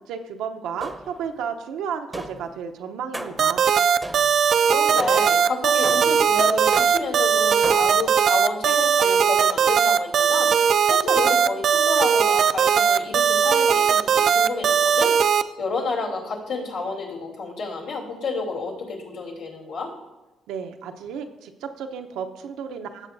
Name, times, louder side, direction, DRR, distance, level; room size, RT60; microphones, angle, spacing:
voice 1, 0.1-3.7 20.5-23.1, right 7 dB, 90° right, 5 dB, 0.8 m, -33 dB
sound 1, 0.8-1.3 2.1-2.6 3.1-3.6 4.0-4.5 5.0-5.4 5.8-6.3 6.7-7.2 7.6-8.1, right 1 dB, 5° right, 0.8 m, -34 dB
sound 2, 3.4-15.4, right 7 dB, 60° right, 0.4 m, -19 dB
voice 2, 4.6-10.5 10.9-15.1 15.6-19.9, left 3 dB, 85° left, -3 dB, 2.9 m, -30 dB
17.0 x 7.5 x 2.7 m, 1.0 s
cardioid pair, 90°, 0 cm